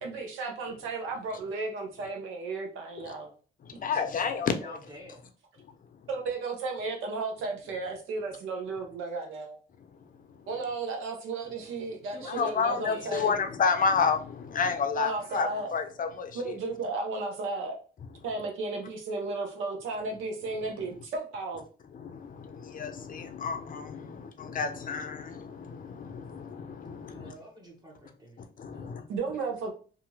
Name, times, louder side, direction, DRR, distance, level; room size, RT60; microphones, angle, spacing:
voice 1, 0.0-3.3 6.1-9.6 10.5-13.3 14.9-15.7 16.3-17.8 18.2-21.6 29.1-29.7, right 3 dB, 90° right, 0.8 m, -34 dB
voice 2, 3.7-4.8 12.3-16.5 20.8-20.9 21.9-27.3 28.6-29.0, left 5 dB, 45° left, 0.5 m, -30 dB
voice 3, 4.6-5.2 12.1-13.2 27.1-29.1, equal, 20° right, 1.0 m, -48 dB
2.8 x 2.5 x 2.7 m
cardioid pair, 90°, 20 cm